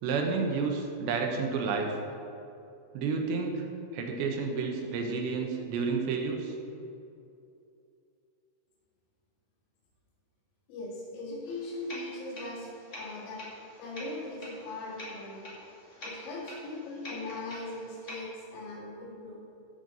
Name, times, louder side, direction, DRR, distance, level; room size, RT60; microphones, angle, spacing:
voice 1, 0.0-1.9 2.9-3.7 3.9-6.5, right 4 dB, 80° right, 2 dB, 3.3 m, -30 dB
voice 2, 10.7-13.5 13.8-15.5 16.0-19.4, left 2 dB, 85° left, -3 dB, 4.5 m, -40 dB
sound 1, 11.5-18.2, left 1 dB, 30° left, 1.3 m, -46 dB
14.5 x 6.5 x 5.4 m, 2.7 s
omnidirectional pair, 5.2 m